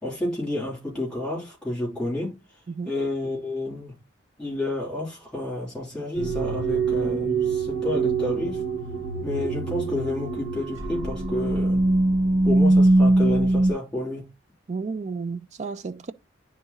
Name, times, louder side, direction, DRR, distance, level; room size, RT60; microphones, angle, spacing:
voice 1, 0.0-2.4 2.8-3.9 4.4-8.6 9.2-11.8 12.4-14.2, left 1 dB, 5° left, 3.2 m, -30 dB
sound 1, 6.1-13.7, right 2 dB, 75° right, 1.0 m, -22 dB
voice 2, 14.7-16.1, right 4 dB, 35° right, 0.4 m, -32 dB
10.0 x 3.6 x 2.9 m
head